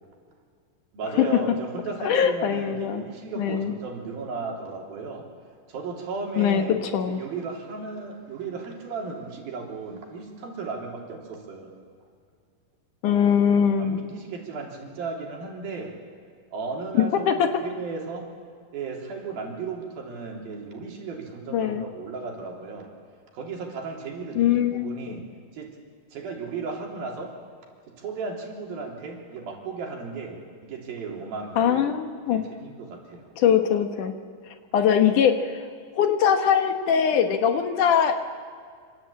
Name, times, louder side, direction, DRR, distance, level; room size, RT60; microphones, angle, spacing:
voice 1, 0.9-5.3 5.7-6.8 7.1-11.7 13.8-16.0 16.5-18.3 18.7-22.9 23.3-25.3 25.5-25.8 26.1-27.4 27.9-31.8 32.3-33.3, right 4 dB, 80° right, 1 dB, 5.3 m, -35 dB
voice 2, 2.0-3.0 3.4-3.7 6.4-7.2 13.0-14.1 17.0-17.5 21.5-21.8 24.4-24.9 31.6-32.4 33.4-34.1 34.5-35.6 35.9-38.2, left 8 dB, 65° left, 7 dB, 2.6 m, -22 dB
26.5 x 26.0 x 8.7 m, 2.1 s
omnidirectional pair, 4.1 m